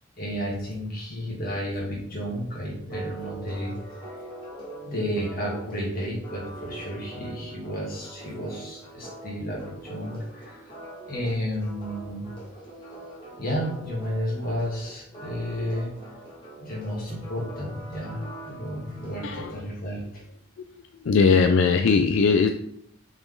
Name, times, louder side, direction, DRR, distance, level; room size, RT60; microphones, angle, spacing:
voice 1, 0.2-3.7 4.0-4.1 4.8-10.7 11.1-12.3 13.4-15.9 16.6-20.2, equal, 45° left, -4 dB, 2.2 m, -32 dB
sound 1, 2.9-19.2, right 2 dB, 25° left, 1.8 m, -43 dB
voice 2, 19.2-19.6 21.0-22.5, left 5 dB, 75° left, 6 dB, 0.4 m, -20 dB
6.0 x 4.1 x 3.8 m, 0.71 s
head